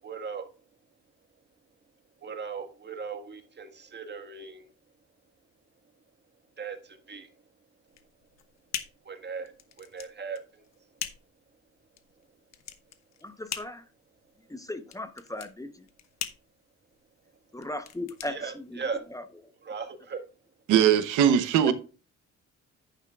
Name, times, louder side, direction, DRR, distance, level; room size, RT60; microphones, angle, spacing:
voice 1, 0.0-0.5 2.2-4.7 6.6-7.3 9.0-10.6 18.2-19.0 19.6-20.2, right 5 dB, 35° right, 1.7 m, -38 dB
sound 1, 7.9-19.2, left 9 dB, 60° left, 1.1 m, -42 dB
voice 2, 13.2-13.8 14.5-15.7 17.5-18.6 19.1-19.2 21.6-21.7, left 1 dB, 10° left, 0.9 m, -37 dB
voice 3, 20.7-21.7, right 9 dB, 90° right, 1.0 m, -20 dB
10.5 x 9.2 x 2.4 m
cardioid pair, 90°, 30 cm